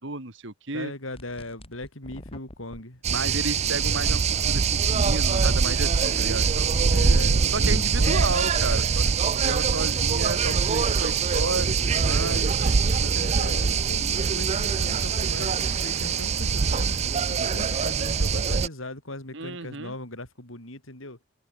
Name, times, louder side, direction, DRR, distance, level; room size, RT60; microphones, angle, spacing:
voice 1, 0.0-0.9 3.1-7.2 7.5-9.0 9.3-13.2 19.3-19.9, right 3 dB, 60° right, 2.5 m, -33 dB
voice 2, 0.7-3.0 6.9-8.4 11.4-12.6 13.0-17.0 17.3-21.2, left 2 dB, 70° left, 5.5 m, -39 dB
sound 1, 1.1-2.8, left 1 dB, 25° left, 3.2 m, -45 dB
sound 2, 3.0-18.7, right 5 dB, 30° right, 0.4 m, -23 dB
head